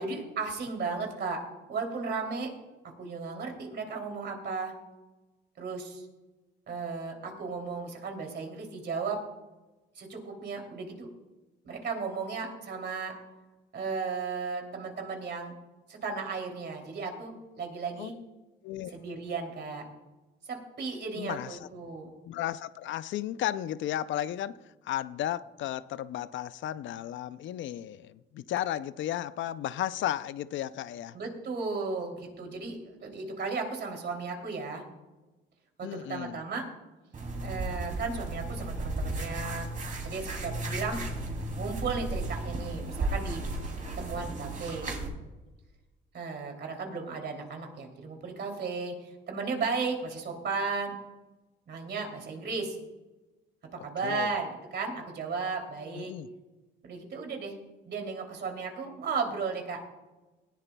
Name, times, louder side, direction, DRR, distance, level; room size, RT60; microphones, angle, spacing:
voice 1, 0.0-1.4 1.7-2.5 2.8-4.7 5.6-6.1 6.7-9.2 9.9-11.1 11.6-13.1 13.7-15.5 15.9-18.1 18.9-19.8 20.5-22.1 31.1-34.8 35.8-36.6 37.4-39.7 40.0-41.0 41.6-43.4 44.0-44.9 46.1-51.0 51.7-52.8 53.8-56.1 56.8-57.5 57.8-59.8, right 4 dB, 60° right, 2.9 m, -35 dB
voice 2, 21.2-21.7 22.3-24.6 24.8-31.2 35.8-36.4 54.0-54.3 56.0-56.3, left 12 dB, 75° left, 0.5 m, -34 dB
sound 1, 37.1-45.1, right 2 dB, 40° right, 3.0 m, -34 dB
19.0 x 13.5 x 2.3 m
cardioid pair, 90°, 20 cm